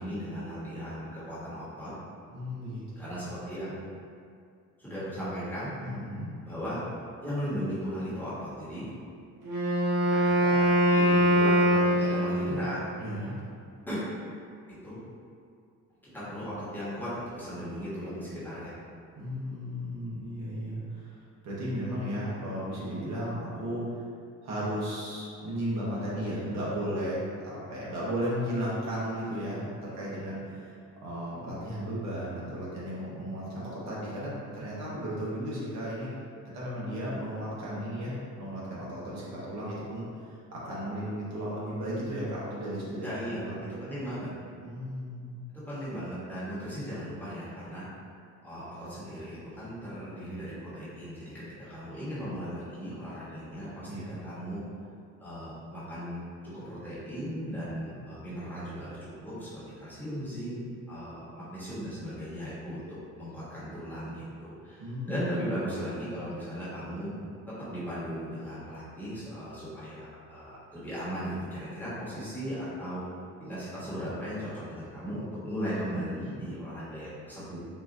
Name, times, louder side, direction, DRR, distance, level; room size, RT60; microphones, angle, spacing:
voice 1, 0.0-1.9 3.0-3.7 4.8-5.7 6.4-6.8 7.2-8.9 10.1-12.8 13.9-14.1 14.8-15.0 16.1-18.8 43.0-43.4 43.8-44.3 45.5-47.8 48.4-54.6 55.2-56.2 56.5-62.8 63.2-67.1 67.7-73.0 73.4-77.6, equal, 5° left, -12 dB, 1.0 m, -37 dB
voice 2, 2.3-2.8 5.8-6.3 13.0-13.3 19.2-24.0 24.4-36.1 36.5-43.1 43.4-43.6 44.6-45.4 53.9-54.1 64.8-65.2, equal, 60° right, -7 dB, 1.0 m, -35 dB
Wind instrument woodwind instrument, 9.4-12.7, equal, 85° right, 0.8 m, -23 dB
3.9 x 2.3 x 2.6 m, 2.3 s
cardioid pair, 145°, 31 cm